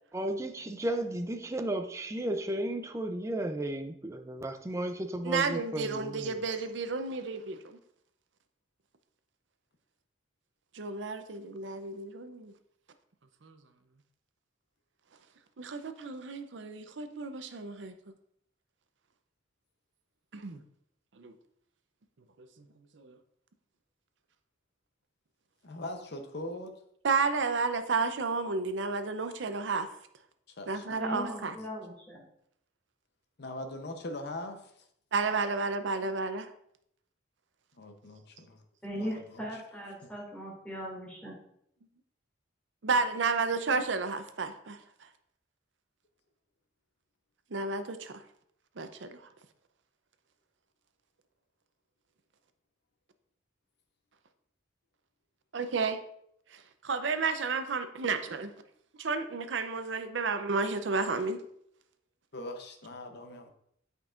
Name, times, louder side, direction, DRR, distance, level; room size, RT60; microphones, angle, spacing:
voice 1, 0.1-6.4, right 1 dB, 15° right, 6 dB, 0.4 m, -34 dB
voice 2, 5.3-7.8 10.7-12.5 13.4-13.6 15.6-17.9 20.3-20.6 21.2-21.3 22.9-23.2 27.0-29.9 30.7-31.6 35.1-36.5 42.8-44.8 47.5-48.1 48.8-49.2 55.5-56.0 56.5-58.5 59.0-61.4, right 4 dB, 70° right, 9 dB, 0.6 m, -32 dB
voice 3, 25.6-26.7 30.6-31.5 33.4-34.7 37.8-38.6 38.9-39.6 62.3-63.5, left 1 dB, 60° left, 5 dB, 0.8 m, -41 dB
voice 4, 30.9-32.2 38.8-41.3, equal, 5° left, -5 dB, 2.4 m, -39 dB
8.5 x 5.3 x 2.5 m, 0.71 s
head